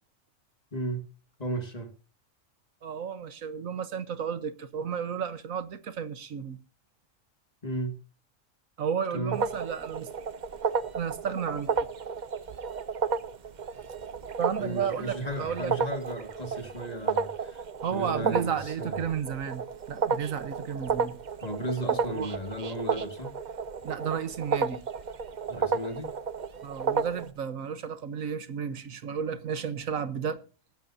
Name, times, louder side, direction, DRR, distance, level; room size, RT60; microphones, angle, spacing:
voice 1, 0.7-1.1 1.4-1.9 7.6-8.0 9.1-9.4 14.6-17.6 17.9-19.0 21.4-23.3 25.5-26.1, right 1 dB, 30° left, 2.1 m, -35 dB
voice 2, 2.8-6.6 8.8-10.1 10.9-11.7 14.4-15.7 17.8-21.2 21.9-22.3 23.8-24.8 26.6-30.4, right 7 dB, 85° right, 1.5 m, -33 dB
sound 1, 9.3-27.3, right 5 dB, 45° right, 0.7 m, -32 dB
20.0 x 10.5 x 2.7 m
omnidirectional pair, 1.4 m